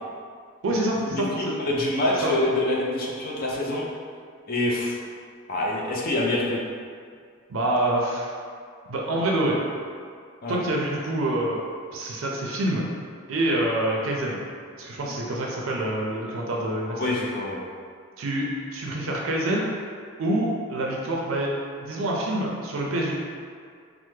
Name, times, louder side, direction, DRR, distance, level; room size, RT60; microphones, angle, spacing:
voice 1, 0.6-1.6 2.2-2.4 7.5-8.3 8.9-9.6 10.5-12.8 13.3-14.4 14.8-17.1 18.2-19.7 20.2-21.5 21.8-23.1, right 1 dB, 75° right, -2 dB, 0.4 m, -26 dB
voice 2, 1.2-3.9 4.5-5.0 5.5-6.6 10.4-10.6 15.1-15.2 16.9-17.6, left 1 dB, 45° left, -3 dB, 0.5 m, -26 dB
3.2 x 2.0 x 3.1 m, 2.1 s
head